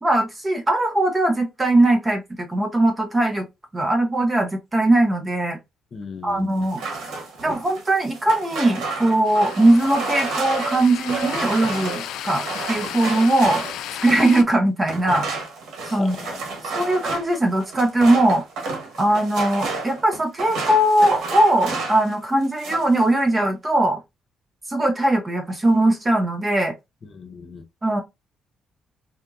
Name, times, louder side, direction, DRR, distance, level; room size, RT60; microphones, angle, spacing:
voice 1, 0.0-2.2 2.5-3.4 3.7-5.6 6.2-6.8 7.4-13.6 14.0-15.3 15.9-16.2 16.6-18.4 19.0-24.0 24.7-26.7 27.8-28.0, right 1 dB, 25° right, 0.9 m, -20 dB
voice 2, 5.9-6.7 15.9-16.7 27.1-27.6, left 5 dB, 45° left, 0.7 m, -38 dB
sound 1, 6.6-14.3 14.8-22.1 22.4-23.0, right 3 dB, 80° right, 1.3 m, -31 dB
sound 2, 9.3-14.4, left 11 dB, 85° left, 0.4 m, -34 dB
4.4 x 2.7 x 2.4 m
cardioid pair, 90°, 0 cm